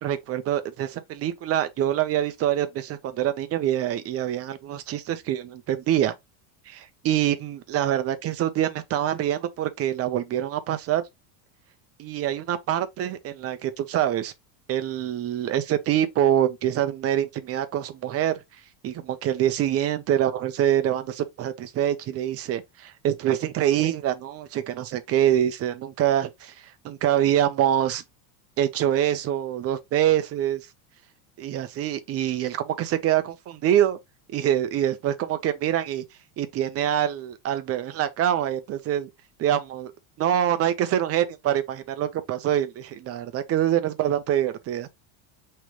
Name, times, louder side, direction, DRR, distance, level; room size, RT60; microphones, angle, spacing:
voice 1, 0.0-6.1 6.7-11.0 12.0-14.3 14.7-18.3 18.8-26.5 26.8-28.0 28.6-30.6 31.4-34.0 34.3-36.0 36.4-39.1 39.4-39.9 40.2-44.9, right 11 dB, 30° right, 0.6 m, -25 dB
5.2 x 3.3 x 3.0 m
supercardioid pair, 145°, 48 cm